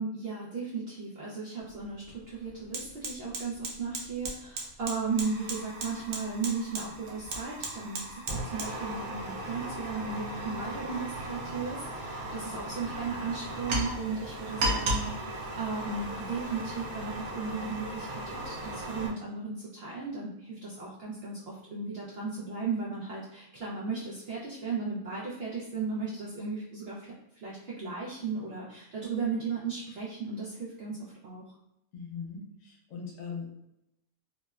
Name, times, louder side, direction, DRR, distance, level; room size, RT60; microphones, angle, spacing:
voice 1, 0.0-27.1 27.4-31.6, right 4 dB, 70° right, -6 dB, 0.6 m, -36 dB
Fire, 1.6-1.7 2.1-19.1, right 1 dB, 90° right, 1.0 m, -36 dB
voice 2, 31.9-33.6, left 5 dB, 70° left, -2 dB, 1.0 m, -40 dB
2.9 x 2.1 x 2.2 m, 0.85 s
omnidirectional pair, 1.5 m